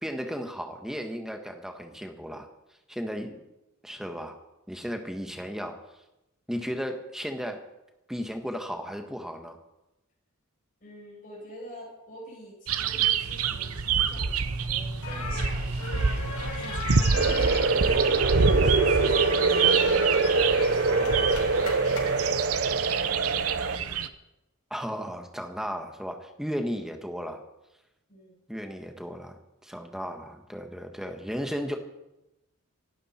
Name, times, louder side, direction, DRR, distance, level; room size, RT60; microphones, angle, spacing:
voice 1, 0.0-2.5 2.9-3.4 3.8-4.4 4.7-5.8 6.5-7.6 8.1-9.6 24.7-27.4 28.5-31.8, equal, ahead, 4 dB, 1.4 m, -35 dB
voice 2, 10.8-16.1 16.6-20.5 20.9-24.1 28.1-28.4, equal, 40° left, -3 dB, 7.8 m, -47 dB
sound 1, 12.7-24.1, right 5 dB, 85° right, 0.9 m, -27 dB
sound 2, 15.0-22.3, left 3 dB, 85° left, 4.7 m, -36 dB
sound 3, 17.1-23.8, right 3 dB, 55° right, 0.7 m, -24 dB
26.5 x 12.0 x 4.4 m, 0.93 s
head